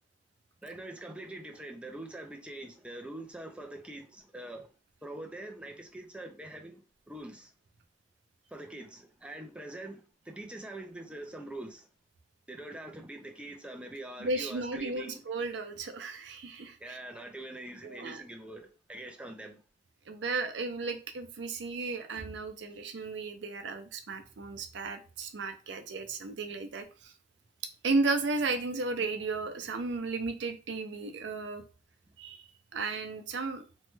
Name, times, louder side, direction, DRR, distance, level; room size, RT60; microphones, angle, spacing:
voice 1, 0.6-4.7 5.0-6.8 7.1-7.5 8.5-11.9 12.5-15.2 16.8-19.6, right 1 dB, 5° right, 0.3 m, -44 dB
voice 2, 14.2-17.0 17.8-18.2 20.1-27.1 27.8-31.6 32.2-32.4 32.7-33.6, right 3 dB, 75° right, 0.5 m, -34 dB
3.0 x 2.1 x 3.1 m
head